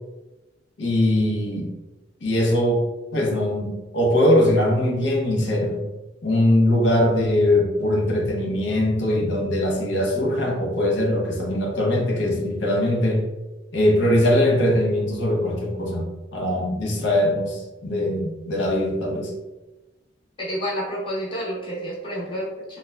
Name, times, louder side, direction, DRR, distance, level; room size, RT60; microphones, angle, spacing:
voice 1, 0.8-1.7 2.2-2.8 3.1-5.8 6.2-13.2 13.7-19.3, left 1 dB, 75° left, -1 dB, 0.7 m, -21 dB
voice 2, 20.4-22.8, equal, 25° left, -6 dB, 0.9 m, -29 dB
3.1 x 2.2 x 2.3 m, 1.1 s
head